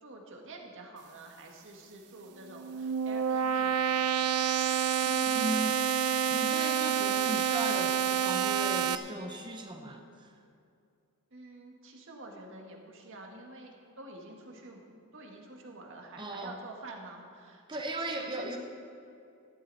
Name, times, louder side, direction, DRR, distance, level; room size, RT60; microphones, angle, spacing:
voice 1, 0.0-4.0 11.3-14.8 15.1-17.8 18.2-18.6, right 2 dB, 60° right, 1 dB, 1.8 m, -48 dB
sound 1, 2.5-9.0, right 8 dB, 85° right, 0.6 m, -28 dB
voice 2, 5.1-5.8 6.3-10.4 16.2-16.6 17.7-18.6, right 1 dB, 20° right, 4 dB, 0.8 m, -37 dB
15.0 x 12.5 x 4.2 m, 2.5 s
head